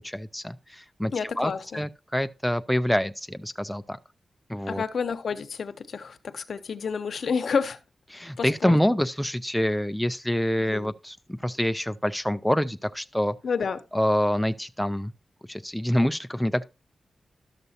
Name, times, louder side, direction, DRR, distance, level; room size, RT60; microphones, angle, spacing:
voice 1, 0.0-1.1 1.4-4.0 4.5-4.8 8.1-13.3 13.9-15.1 15.5-16.6, equal, ahead, 0.3 m, -26 dB
voice 2, 1.1-1.8 4.7-7.8 8.4-8.8 10.6-10.9 13.4-13.8, left 5 dB, 70° left, 0.7 m, -30 dB
12.0 x 6.7 x 2.7 m
wide cardioid pair, 130°, 0 cm